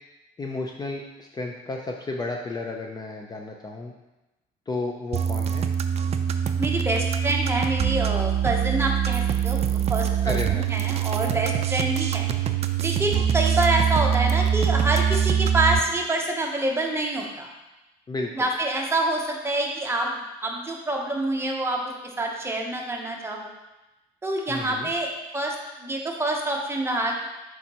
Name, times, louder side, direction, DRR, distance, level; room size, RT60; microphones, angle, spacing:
voice 1, 0.4-3.9 4.7-5.7 10.2-10.6 18.1-18.5 24.5-24.9, left 2 dB, 25° left, 1 dB, 0.6 m, -32 dB
sound 1, 5.1-15.8, right 9 dB, 40° right, 0.4 m, -24 dB
voice 2, 6.6-12.3 12.8-17.5 18.3-21.8 22.2-23.5 24.2-27.3, right 2 dB, 15° right, 0 dB, 1.0 m, -26 dB
7.0 x 4.6 x 3.0 m, 1.0 s
cardioid pair, 110°, 17 cm